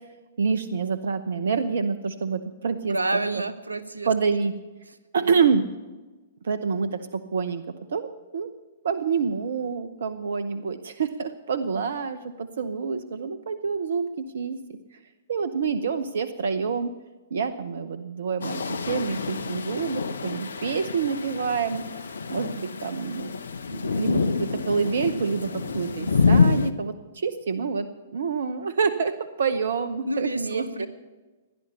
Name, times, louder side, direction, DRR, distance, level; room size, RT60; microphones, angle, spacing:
voice 1, 0.4-3.0 4.0-4.5 5.1-5.6 6.4-7.6 7.9-8.5 8.8-15.0 15.3-16.9 17.3-23.3 23.7-30.9, right 5 dB, 65° right, 12 dB, 0.9 m, -27 dB
voice 2, 2.9-4.1 5.2-5.5 30.1-30.9, right 2 dB, 90° right, 13 dB, 1.2 m, -29 dB
sound 1, 18.4-26.7, left 4 dB, 75° left, 0.9 m, -27 dB
16.5 x 11.0 x 6.9 m, 1.2 s
figure-of-eight pair, 115°, 0 cm